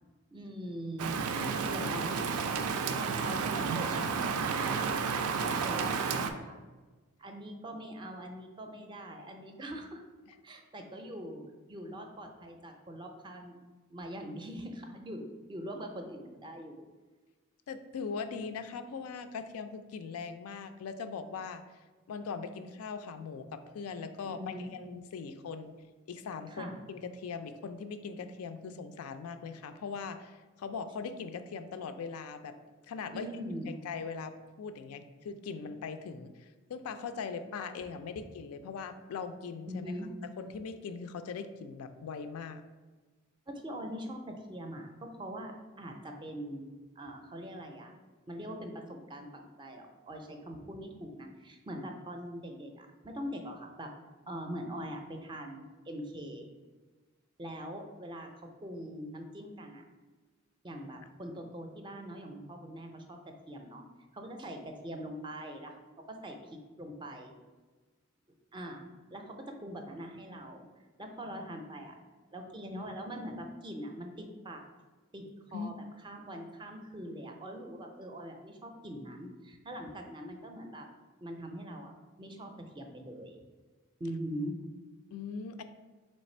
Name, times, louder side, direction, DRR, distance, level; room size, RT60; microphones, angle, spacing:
voice 1, 0.3-1.2 1.7-2.2 3.0-4.9 5.4-6.6 7.2-10.0 10.4-11.4 11.7-13.6 13.9-16.8 24.2-24.7 26.5-26.8 33.1-33.8 39.7-40.1 43.5-46.7 47.0-47.9 48.3-53.9 54.3-56.5 57.4-59.8 60.6-63.8 64.1-67.3 68.5-68.9 69.1-70.7 71.0-71.9 72.3-74.6 75.1-75.3 75.5-75.7 76.0-80.9 81.2-81.9 82.2-83.4 84.0-84.6, equal, 20° right, 4 dB, 0.4 m, -42 dB
Rain, 1.0-6.3, right 5 dB, 85° right, 0.4 m, -31 dB
voice 2, 1.4-1.9 2.4-2.7 10.3-10.4 17.7-21.6 22.1-25.7 26.1-32.6 32.9-33.3 33.8-39.8 40.4-42.6 75.5-75.7 85.1-85.6, left 5 dB, 85° left, 10 dB, 0.3 m, -40 dB
3.2 x 3.2 x 4.2 m, 1.3 s
head